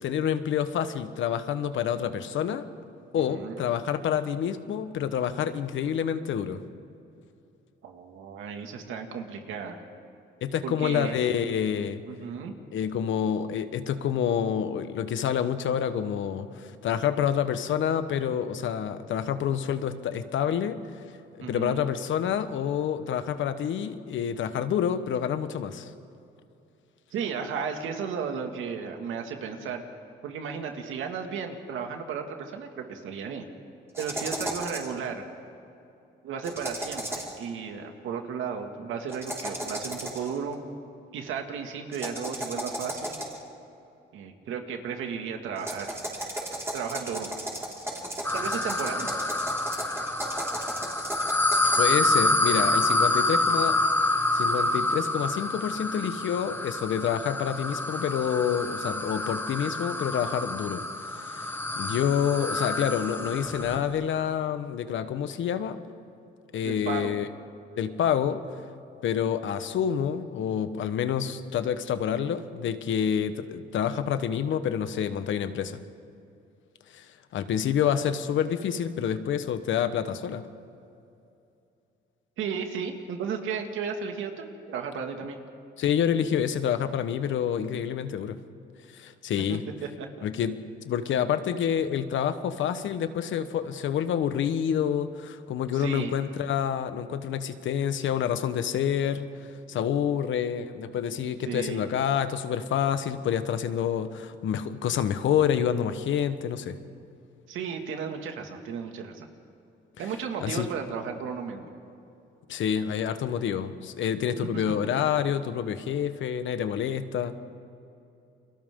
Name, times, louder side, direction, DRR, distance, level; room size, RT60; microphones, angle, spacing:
voice 1, 0.0-2.6 3.1-6.6 10.4-12.0 12.7-20.8 21.4-25.9 51.8-53.8 54.3-65.8 66.5-67.3 67.8-68.4 69.0-75.8 76.9-77.1 77.3-80.5 85.8-88.4 88.9-89.6 90.2-90.6 90.8-99.3 99.7-106.8 110.4-110.7 112.5-117.4, left 8 dB, 75° left, 10 dB, 1.2 m, -28 dB
voice 2, 3.1-3.6 7.8-9.8 10.6-11.2 12.1-12.5 21.4-21.8 27.1-29.8 30.2-33.5 34.0-35.2 36.2-40.6 41.1-43.2 44.1-46.0 46.7-47.3 48.3-49.3 66.6-67.2 82.4-85.4 89.5-89.6 90.0-90.1 95.7-96.1 101.5-101.8 107.5-109.3 110.0-111.7 114.5-114.6, right 6 dB, 85° right, 4 dB, 2.2 m, -34 dB
sound 1, 33.9-35.0 36.4-37.4 39.1-40.4 41.9-43.5 45.6-51.8, right 1 dB, 10° right, 4.9 m, -35 dB
sound 2, 48.2-63.9, left 2 dB, 10° left, 1.4 m, -27 dB
30.0 x 23.0 x 3.8 m, 2.7 s
cardioid pair, 90°, 20 cm